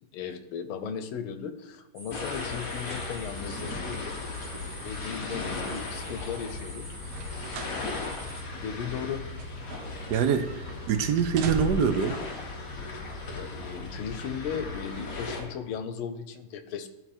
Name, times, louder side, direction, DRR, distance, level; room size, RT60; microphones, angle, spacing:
voice 1, 0.1-4.1 4.8-7.2 8.6-9.3 13.3-16.9, left 7 dB, 90° left, 9 dB, 1.6 m, -36 dB
sound 1, 1.9-8.4, right 2 dB, 35° right, 1.9 m, -47 dB
sound 2, 2.1-15.4, left 3 dB, 45° left, 1.5 m, -37 dB
sound 3, 7.1-7.8 8.2-8.3 9.1-10.1 10.4-10.8 11.2-12.1 13.0-13.1, right 5 dB, 90° right, 1.6 m, -36 dB
voice 2, 10.1-12.2, right 7 dB, 70° right, 8 dB, 1.0 m, -25 dB
12.0 x 4.1 x 4.4 m, 1.0 s
omnidirectional pair, 2.2 m